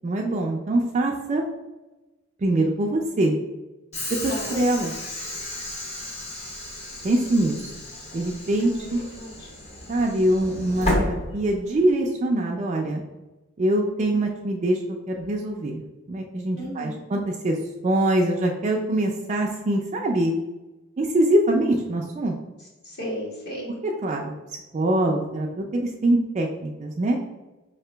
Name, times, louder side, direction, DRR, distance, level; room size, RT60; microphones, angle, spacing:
voice 1, 0.0-1.4 2.4-3.4 4.2-4.9 7.0-7.6 8.1-9.0 9.9-13.0 13.6-14.8 15.1-17.6 17.8-20.3 21.0-22.3 23.8-24.3 24.7-27.2, right 1 dB, 30° right, 0 dB, 0.3 m, -23 dB
Train / Sliding door, 3.9-11.9, left 1 dB, 30° left, 0.8 m, -32 dB
voice 2, 8.5-8.9 9.2-9.5 16.5-17.0 22.8-23.7, equal, 50° left, -3 dB, 1.5 m, -34 dB
5.1 x 2.8 x 3.3 m, 1.1 s
head